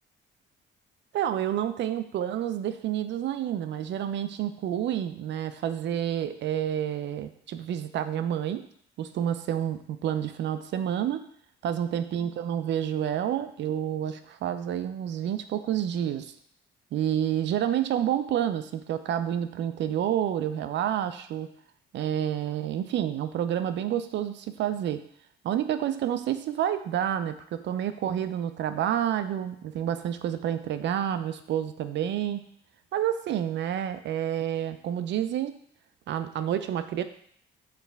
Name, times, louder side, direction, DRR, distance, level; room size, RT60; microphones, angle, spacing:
voice 1, 1.1-8.6 9.0-11.3 11.6-16.3 16.9-21.5 21.9-25.0 25.4-32.4 32.9-35.5 36.1-37.0, right 10 dB, 65° right, 11 dB, 0.4 m, -29 dB
4.5 x 3.2 x 3.4 m, 0.63 s
cardioid pair, 90°, 20 cm